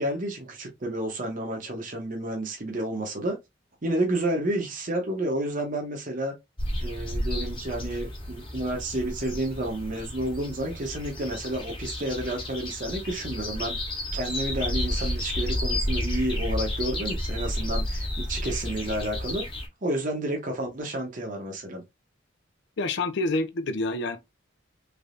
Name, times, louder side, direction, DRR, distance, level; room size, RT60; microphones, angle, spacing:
voice 1, 0.0-3.4 3.8-6.3 6.8-13.8 14.1-19.5 19.8-21.8, right 1 dB, 45° right, 0.8 m, -30 dB
sound 1, 6.6-19.7, left 1 dB, 30° left, 1.3 m, -31 dB
voice 2, 22.8-24.2, left 2 dB, 65° left, 0.5 m, -27 dB
3.4 x 3.3 x 2.5 m
head